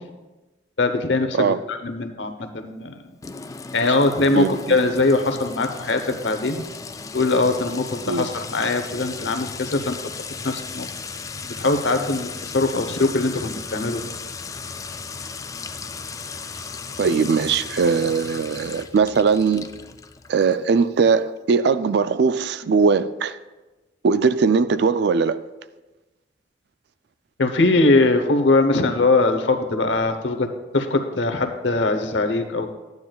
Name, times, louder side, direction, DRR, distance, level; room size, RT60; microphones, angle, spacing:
voice 1, 0.8-2.9 3.7-6.6 7.1-9.9 10.4-10.9 11.6-14.1 27.4-30.5 30.7-32.7, left 2 dB, 75° left, 0.9 m, -21 dB
Sink (filling or washing) / Trickle dribble / Fill (with liquid), 3.2-20.7, left 5 dB, 20° left, 0.3 m, -36 dB
voice 2, 4.3-4.8 8.1-8.3 17.0-19.7 20.3-23.3 24.0-25.4, right 5 dB, 60° right, 0.4 m, -20 dB
12.0 x 9.5 x 2.3 m
head